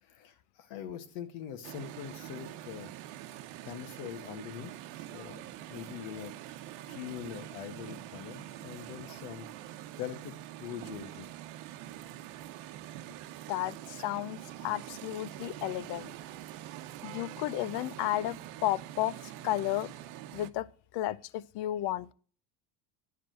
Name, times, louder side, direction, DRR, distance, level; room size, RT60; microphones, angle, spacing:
voice 1, 0.0-2.9 3.6-5.4 5.7-6.3 6.9-11.3, left 10 dB, 75° left, 1.7 m, -43 dB
sound 1, 1.6-20.5, right 13 dB, 75° right, 1.0 m, -45 dB
voice 2, 13.5-16.1 17.0-19.9 20.3-20.7 20.9-22.1, left 14 dB, 60° left, 0.7 m, -33 dB
10.0 x 5.0 x 7.6 m
cardioid pair, 140°, 47 cm